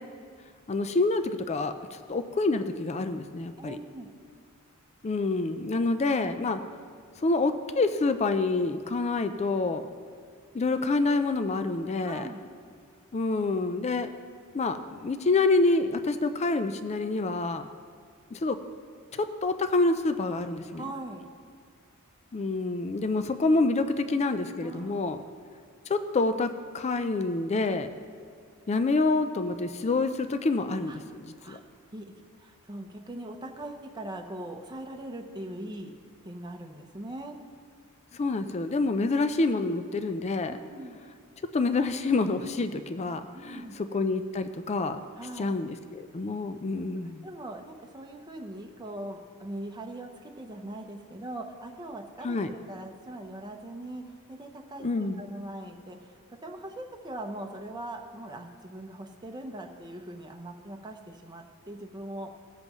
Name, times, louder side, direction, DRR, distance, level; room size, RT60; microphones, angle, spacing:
voice 1, 0.7-3.8 5.0-6.6 7.2-9.8 10.5-12.3 13.1-14.1 14.5-17.7 18.3-18.6 19.1-20.8 22.3-25.2 25.9-27.9 28.7-31.6 38.1-40.6 41.5-45.0 45.4-47.3 52.2-52.5 54.8-55.2, left 3 dB, 30° left, 9 dB, 0.4 m, -27 dB
voice 2, 3.6-4.1 12.0-12.4 20.7-21.2 24.6-25.3 30.9-31.0 31.3-31.6 31.9-35.9 36.2-37.4 40.5-41.0 43.3-43.8 45.2-45.6 46.8-62.3, right 1 dB, 20° right, 2 dB, 0.7 m, -41 dB
19.0 x 7.6 x 3.0 m, 2.1 s
head